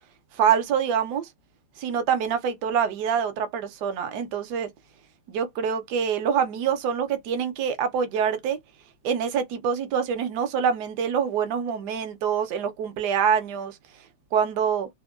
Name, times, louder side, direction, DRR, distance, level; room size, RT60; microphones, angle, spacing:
voice 1, 0.3-1.3 1.8-4.7 5.3-8.6 9.0-13.8 14.3-14.9, right 7 dB, 70° right, 1.2 m, -25 dB
3.4 x 2.2 x 2.3 m
omnidirectional pair, 1.9 m